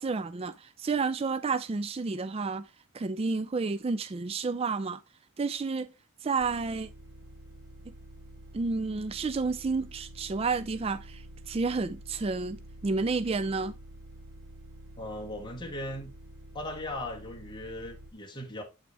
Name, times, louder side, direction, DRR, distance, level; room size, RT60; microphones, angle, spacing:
voice 1, 0.0-2.7 2.9-5.0 5.4-5.9 6.2-6.9 8.5-13.7, right 4 dB, 25° right, 0.3 m, -30 dB
sound 1, 6.4-18.1, right 1 dB, 65° right, 0.9 m, -48 dB
voice 2, 15.0-16.1 16.5-18.6, left 1 dB, 20° left, 1.5 m, -38 dB
8.1 x 6.0 x 3.2 m
head